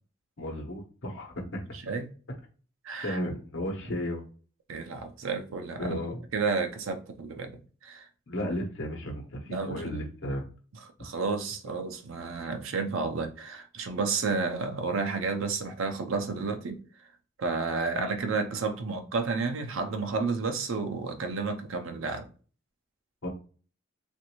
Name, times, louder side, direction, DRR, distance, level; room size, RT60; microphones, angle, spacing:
voice 1, 0.4-1.6 3.0-4.2 5.8-6.2 8.3-10.4 23.2-23.3, equal, 60° left, 1.0 m, -34 dB
voice 2, 2.8-3.2 4.7-6.0 6.3-7.6 7.8-8.1 9.5-10.0 11.0-16.8 17.4-22.3, right 4 dB, 70° right, 0.5 m, -31 dB
3.2 x 2.5 x 3.0 m
head